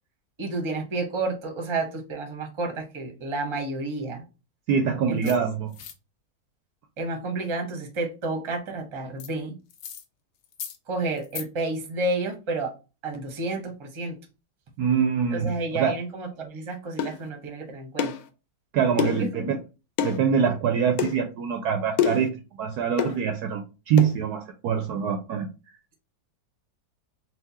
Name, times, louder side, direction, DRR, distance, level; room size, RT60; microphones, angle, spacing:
voice 1, 0.4-4.2 5.1-5.4 7.0-9.5 10.9-12.7 13.0-14.2 15.3-18.1 18.9-19.5, right 2 dB, 25° right, 3 dB, 0.6 m, -30 dB
voice 2, 4.7-5.7 14.8-15.9 18.7-19.6 20.0-25.5, right 7 dB, 70° right, 6 dB, 0.9 m, -24 dB
sound 1, 5.2-5.4 5.7-5.9 9.2-9.3 9.7-10.0 10.4-10.8 11.2-11.4, left 8 dB, 70° left, 1.1 m, -38 dB
sound 2, 17.0-17.2 18.0-18.2 19.0-19.3 20.0-20.2 21.0-21.1 22.0-22.3 23.0-23.2 24.0-24.1, left 8 dB, 90° left, 1.3 m, -26 dB
4.3 x 2.2 x 4.1 m, 0.31 s
omnidirectional pair, 2.0 m